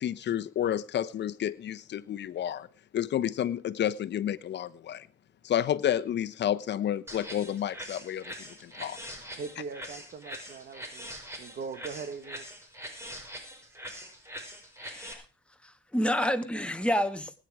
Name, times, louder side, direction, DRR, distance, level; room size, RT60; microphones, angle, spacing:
voice 1, 0.0-2.7 2.9-5.1 5.4-9.0, left 10 dB, 60° left, 1.0 m, -30 dB
sound 1, 7.1-15.1, equal, 15° right, 5.0 m, -43 dB
voice 2, 9.4-12.5, right 5 dB, 55° right, 1.5 m, -41 dB
voice 3, 14.8-15.2 15.6-17.3, equal, 5° left, 1.7 m, -29 dB
20.0 x 9.5 x 4.8 m
cardioid pair, 90°, 20 cm